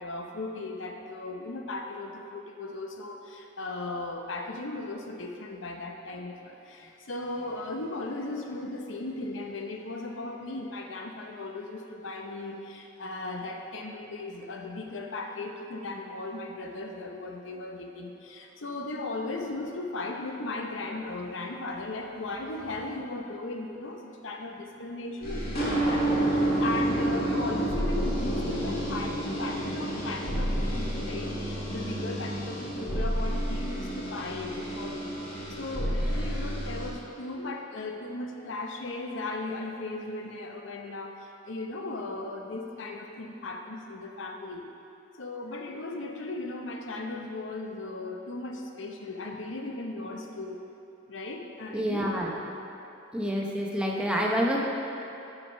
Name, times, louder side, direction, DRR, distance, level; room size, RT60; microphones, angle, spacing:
voice 1, 0.0-44.7 45.2-50.6 51.1-52.1, left 2 dB, 70° left, 2 dB, 0.7 m, -37 dB
sound 1, 25.2-36.9, right 1 dB, 50° left, 1.9 m, -29 dB
voice 2, 51.7-52.3 53.1-54.6, equal, 5° right, -2 dB, 0.7 m, -27 dB
8.4 x 4.9 x 5.4 m, 2.9 s
head